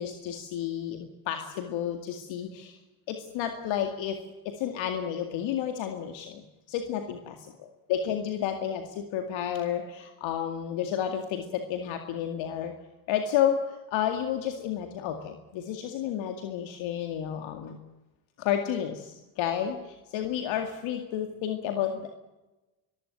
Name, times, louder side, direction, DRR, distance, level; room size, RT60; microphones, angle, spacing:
voice 1, 0.0-2.8 3.1-4.2 4.4-7.3 7.9-12.7 13.1-17.8 18.4-22.1, left 9 dB, 65° left, 5 dB, 2.3 m, -31 dB
23.5 x 15.0 x 9.3 m, 1.1 s
hypercardioid pair, 65°, 48 cm